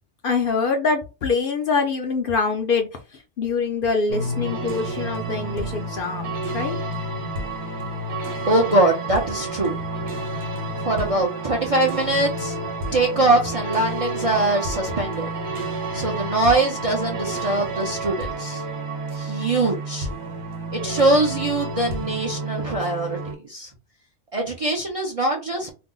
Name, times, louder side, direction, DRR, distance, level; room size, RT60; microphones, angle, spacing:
voice 1, 0.2-2.9 3.4-6.3 6.5-6.8, left 4 dB, 60° left, 4 dB, 0.6 m, -24 dB
sound 1, 4.1-23.3, right 2 dB, 65° right, 1.1 m, -30 dB
voice 2, 8.5-9.8 10.8-12.6 12.9-15.3 15.9-18.6 19.1-20.1 20.7-23.2 23.4-23.7 24.3-25.7, right 2 dB, 45° right, 0 dB, 0.5 m, -22 dB
2.6 x 2.0 x 3.7 m, 0.29 s
omnidirectional pair, 1.2 m